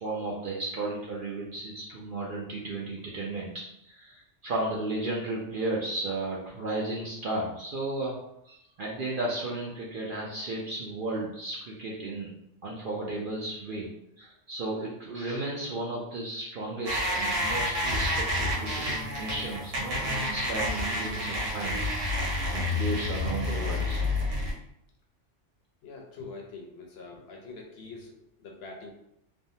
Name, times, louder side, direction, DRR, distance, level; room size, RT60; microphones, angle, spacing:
voice 1, 0.0-3.5 3.8-8.2 8.4-12.3 12.6-13.9 14.2-21.9 22.5-24.0, right 2 dB, 60° right, -3 dB, 0.6 m, -34 dB
sound 1, 16.9-24.5, left 1 dB, 80° right, 1.3 m, -29 dB
voice 2, 25.8-28.9, left 3 dB, 65° left, 0 dB, 0.7 m, -44 dB
3.4 x 2.0 x 2.6 m, 0.78 s
omnidirectional pair, 1.3 m